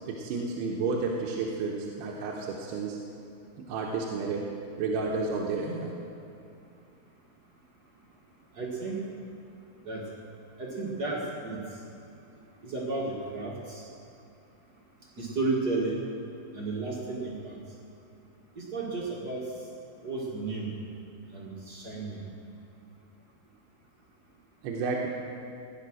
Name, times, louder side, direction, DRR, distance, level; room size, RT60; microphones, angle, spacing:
voice 1, 0.1-3.0 3.6-4.5 4.8-5.9 24.6-25.1, right 4 dB, 85° right, -1 dB, 3.1 m, -31 dB
voice 2, 8.6-9.0 9.8-10.0 10.6-11.6 12.6-13.8 15.2-16.0 16.5-17.5 18.5-19.5 20.0-20.7 21.3-22.2, right 3 dB, 55° right, -3 dB, 1.1 m, -33 dB
17.5 x 9.8 x 6.3 m, 2.5 s
omnidirectional pair, 4.6 m